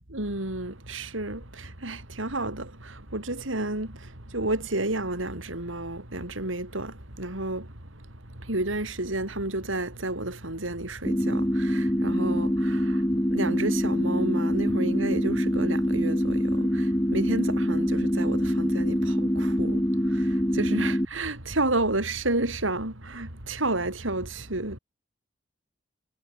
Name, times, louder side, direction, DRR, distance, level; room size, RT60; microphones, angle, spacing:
voice 1, 0.1-24.8, right 2 dB, 85° right, 4.8 m, -31 dB
sound 1, 11.1-21.1, equal, 15° left, 2.0 m, -25 dB
head